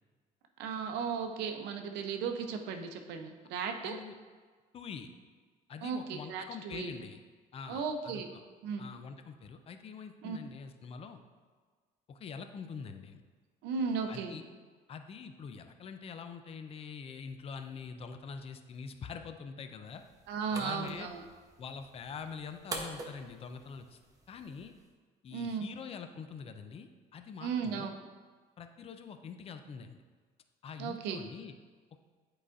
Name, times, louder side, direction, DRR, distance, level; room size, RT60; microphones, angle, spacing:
voice 1, 0.6-4.0 5.8-6.9 7.7-8.3 8.6-8.9 10.2-10.4 13.6-14.4 20.3-21.2 25.3-25.7 27.4-28.0 30.8-31.2, right 6 dB, 85° right, 5 dB, 0.6 m, -35 dB
voice 2, 3.8-4.2 4.7-5.1 5.7-7.2 7.5-8.4 8.8-11.2 12.1-13.2 14.1-14.4 14.9-20.0 20.5-21.1 21.6-24.0 24.3-24.7 25.2-28.0 28.6-30.0 30.6-31.5, left 6 dB, 35° left, 8 dB, 0.4 m, -45 dB
sound 1, 19.9-24.9, right 2 dB, 20° right, 0.8 m, -46 dB
8.2 x 4.8 x 2.5 m, 1.5 s
cardioid pair, 110°, 17 cm